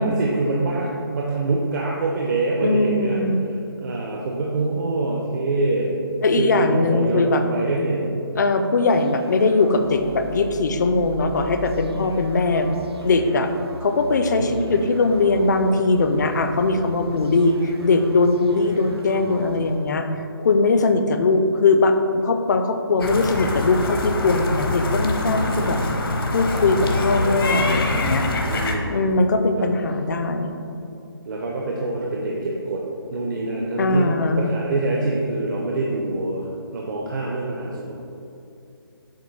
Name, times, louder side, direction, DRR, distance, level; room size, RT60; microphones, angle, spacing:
voice 1, 0.0-3.3 3.8-5.9 6.4-8.2 14.4-14.8 25.6-25.8 28.5-29.2 31.2-32.8 33.1-36.5 36.7-38.0, right 2 dB, 50° right, -2 dB, 0.7 m, -25 dB
voice 2, 2.6-3.4 6.2-7.4 8.4-12.7 13.0-13.5 13.8-20.1 20.4-25.8 26.3-28.3 28.9-30.5 33.8-34.5, left 3 dB, 45° left, 7 dB, 0.5 m, -20 dB
sound 1, 8.9-19.9, right 1 dB, 90° right, 0.7 m, -38 dB
sound 2, 23.0-28.7, left 2 dB, 65° left, 0.9 m, -24 dB
7.5 x 2.6 x 5.4 m, 2.6 s
hypercardioid pair, 165°, 13 cm